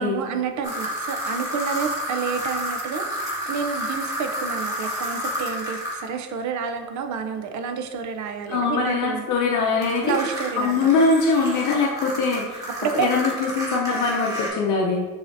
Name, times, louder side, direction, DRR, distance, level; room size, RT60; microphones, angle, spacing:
voice 1, 0.0-9.3 10.0-11.0 12.8-13.1, right 6 dB, 70° right, 6 dB, 0.6 m, -29 dB
sound 1, 0.6-6.1 9.8-14.5, equal, 10° right, 1.5 m, -30 dB
voice 2, 8.5-10.1 10.6-15.1, left 4 dB, 80° left, -1 dB, 0.7 m, -22 dB
6.8 x 2.8 x 2.6 m, 1.3 s
cardioid pair, 90°, 30 cm